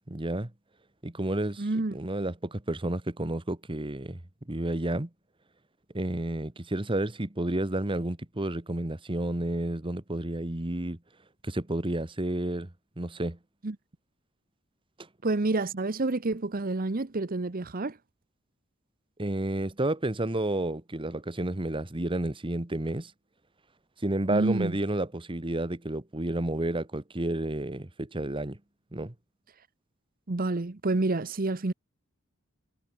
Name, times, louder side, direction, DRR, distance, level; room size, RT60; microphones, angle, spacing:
voice 1, 0.1-0.5 1.0-4.2 4.5-5.1 5.9-11.0 11.4-13.4 19.2-23.1 24.0-28.6 28.9-29.1, right 1 dB, 25° right, 1.4 m, -31 dB
voice 2, 1.6-2.0 13.6-13.8 15.2-18.0 24.3-24.8 30.3-31.7, right 2 dB, 45° right, 0.9 m, -28 dB
head